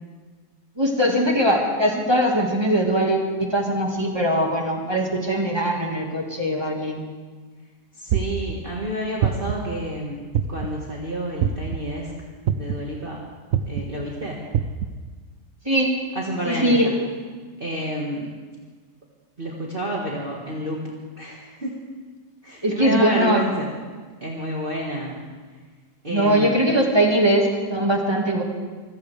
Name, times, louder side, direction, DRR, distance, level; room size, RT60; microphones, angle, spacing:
voice 1, 0.8-7.1 15.7-15.9 16.4-16.9 22.6-23.4 26.1-28.4, right 1 dB, 15° right, 0 dB, 1.9 m, -21 dB
voice 2, 7.9-10.2 10.5-12.1 12.6-13.2 13.6-14.4 16.2-16.9 17.6-18.3 19.4-20.8 21.2-21.7 22.4-23.7 24.2-25.2 26.0-26.6, right 1 dB, 35° right, -3 dB, 1.8 m, -29 dB
sound 1, 8.1-8.5 9.2-9.7 10.3-10.8 11.4-11.8 12.5-12.9 13.5-13.8 14.5-14.9, right 9 dB, 60° right, 1.0 m, -23 dB
24.5 x 15.5 x 3.5 m, 1.4 s
omnidirectional pair, 1.8 m